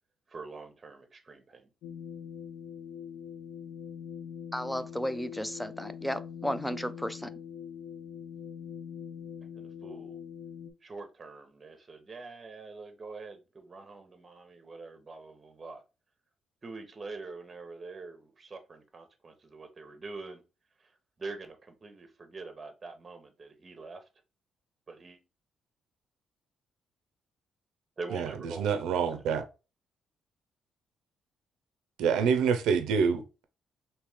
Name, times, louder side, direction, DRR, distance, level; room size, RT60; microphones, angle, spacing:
voice 1, 0.3-1.7 9.6-10.2 10.8-15.8 16.6-20.4 21.2-24.0 24.9-25.2 28.0-29.0, right 3 dB, 30° right, 0.8 m, -44 dB
sound 1, 1.8-10.7, left 8 dB, 80° left, 0.5 m, -43 dB
voice 2, 4.5-7.3, equal, 5° left, 0.4 m, -34 dB
voice 3, 28.1-29.4 32.0-33.4, right 6 dB, 90° right, 0.5 m, -27 dB
3.0 x 2.7 x 3.5 m
cardioid pair, 90°, 0 cm